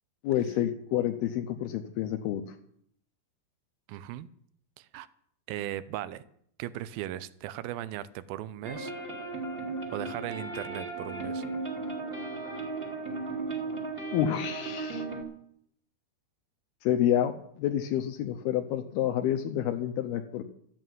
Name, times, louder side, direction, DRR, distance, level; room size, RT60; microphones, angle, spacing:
voice 1, 0.2-2.5 14.1-15.0 16.8-20.4, left 11 dB, 80° left, 6 dB, 2.7 m, -29 dB
voice 2, 3.9-4.3 4.8-5.1 5.5-6.2 6.6-8.9 9.9-11.4, right 13 dB, 80° right, 16 dB, 2.3 m, -37 dB
sound 1, 8.6-15.2, right 3 dB, 20° right, 1.9 m, -35 dB
13.0 x 9.1 x 9.2 m, 0.67 s
omnidirectional pair, 4.7 m